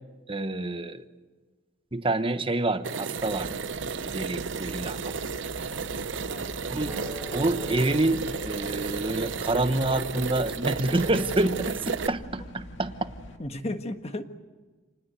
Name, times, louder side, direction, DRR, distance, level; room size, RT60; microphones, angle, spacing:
voice 1, 0.3-1.0 1.9-3.5 4.0-5.0 6.7-7.0 7.3-12.9, right 2 dB, 25° right, 10 dB, 1.1 m, -27 dB
sound 1, 2.8-12.1, right 5 dB, 65° right, 0.8 m, -33 dB
sound 2, 3.2-13.4, left 1 dB, 70° left, 2.2 m, -44 dB
sound 3, 5.8-11.7, equal, ahead, 1.5 m, -45 dB
voice 2, 6.3-6.7 13.4-14.2, left 1 dB, 30° left, 7 dB, 1.5 m, -34 dB
27.5 x 20.0 x 8.1 m, 1.4 s
head